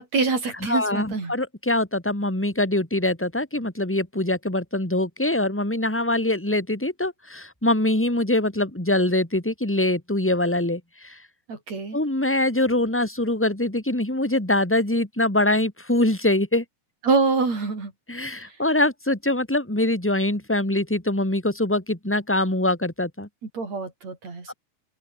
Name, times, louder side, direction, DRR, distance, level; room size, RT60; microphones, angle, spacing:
voice 1, 0.0-1.3 11.5-12.0 17.0-17.9 18.4-18.5 23.4-24.5, right 4 dB, 40° right, 6.8 m, -25 dB
voice 2, 0.7-11.2 11.9-16.6 18.1-23.3 24.5-24.6, left 1 dB, 5° left, 4.5 m, -23 dB
open air
omnidirectional pair, 4.6 m